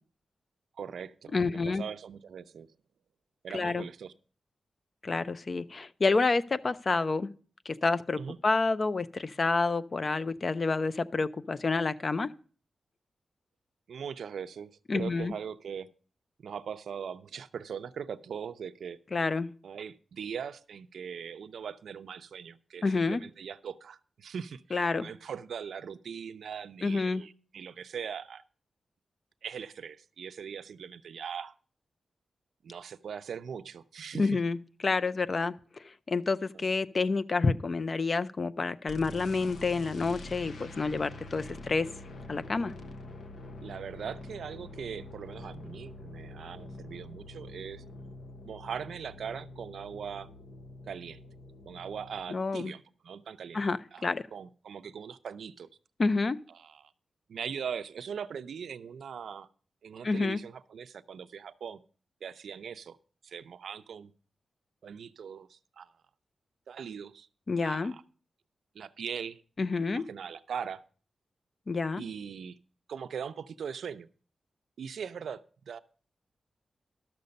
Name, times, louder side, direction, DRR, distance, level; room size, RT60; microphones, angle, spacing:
voice 1, 0.8-2.7 3.4-4.1 8.2-8.4 13.9-15.9 16.4-19.0 19.6-28.4 29.4-31.5 32.6-34.3 36.5-36.7 41.4-41.6 43.6-47.8 48.4-50.3 50.9-51.2 51.7-53.6 53.9-54.0 54.3-55.7 56.5-56.8 57.3-59.5 59.8-61.8 62.2-63.0 63.2-64.1 64.8-65.9 66.7-67.3 67.6-68.0 68.7-69.4 69.9-70.8 72.0-72.6 72.9-74.1 74.8-75.4 75.7-75.8, right 7 dB, 85° right, 12 dB, 0.5 m, -40 dB
voice 2, 1.3-1.8 3.5-3.8 5.0-7.3 7.7-12.3 14.9-15.3 19.1-19.5 22.8-23.2 24.7-25.1 26.8-27.2 34.2-34.6 34.8-41.9 42.3-42.7 52.3-52.7 53.5-54.3 56.0-56.4 60.0-60.4 67.5-67.9 69.6-70.0 71.7-72.0, left 3 dB, 35° left, 14 dB, 0.4 m, -29 dB
sound 1, 38.9-52.2, left 2 dB, 80° left, 1.1 m, -46 dB
12.0 x 6.8 x 5.2 m, 0.41 s
wide cardioid pair, 160°, 0 cm